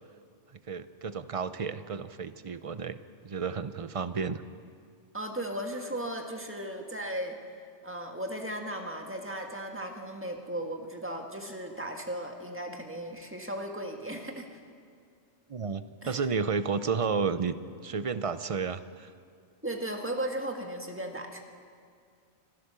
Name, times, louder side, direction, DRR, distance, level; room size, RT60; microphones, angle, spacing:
voice 1, 0.7-3.0 3.2-4.4 15.5-17.5 17.8-19.1, right 5 dB, 40° right, 13 dB, 0.5 m, -31 dB
voice 2, 5.1-7.4 7.8-14.6 16.0-16.3 19.6-21.4, right 1 dB, 10° right, 3 dB, 1.7 m, -36 dB
25.5 x 16.0 x 6.9 m, 2.2 s
omnidirectional pair, 1.2 m